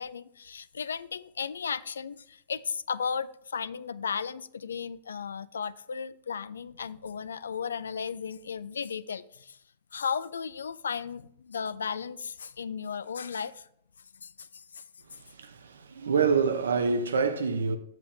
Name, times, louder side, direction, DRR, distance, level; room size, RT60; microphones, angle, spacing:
voice 1, 0.0-9.6 9.9-13.6 14.2-14.8, left 6 dB, 90° left, 0.3 m, -35 dB
voice 2, 15.0-17.8, right 5 dB, 85° right, 0.7 m, -27 dB
7.5 x 7.0 x 3.3 m
hypercardioid pair, 115°, 0 cm